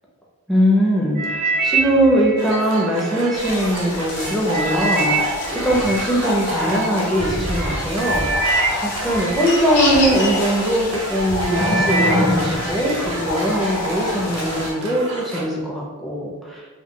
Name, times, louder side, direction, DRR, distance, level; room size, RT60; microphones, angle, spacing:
voice 1, 0.5-16.7, equal, ahead, -4 dB, 0.5 m, -21 dB
sound 1, 1.2-3.5 4.0-6.9 7.6-7.7 8.0-10.4 10.9-11.2 11.5-13.0 13.3-13.8 14.4-14.5, right 3 dB, 50° right, 0.5 m, -25 dB
sound 2, 2.4-15.4, right 2 dB, 85° right, 0.7 m, -32 dB
sound 3, 3.3-14.7, left 1 dB, 85° left, 0.8 m, -26 dB
2.2 x 2.2 x 3.6 m, 1.4 s
head